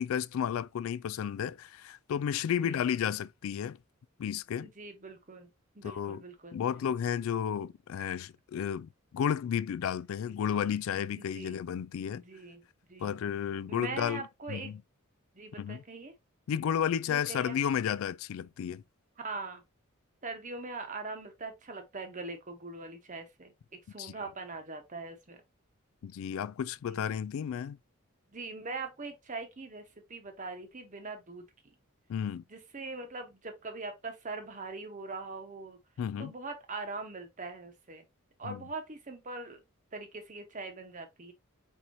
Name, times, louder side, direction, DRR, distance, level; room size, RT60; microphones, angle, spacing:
voice 1, 0.0-3.8 4.2-4.7 5.8-6.2 6.5-12.2 13.0-14.7 15.6-15.8 16.5-18.8 24.0-24.1 26.0-27.8 32.1-32.4 36.0-36.3 38.4-38.6, left 8 dB, 70° left, 0.3 m, -32 dB
voice 2, 4.6-5.5 5.7-6.6 8.0-8.2 11.2-11.6 12.1-13.2 13.7-14.7 15.3-16.1 17.1-17.6 19.2-19.6 20.2-25.4 26.9-27.1 28.3-31.4 32.5-35.8 36.2-38.1 38.4-39.6 39.9-41.3, right 3 dB, 35° right, 1.0 m, -42 dB
4.6 x 4.0 x 2.6 m
head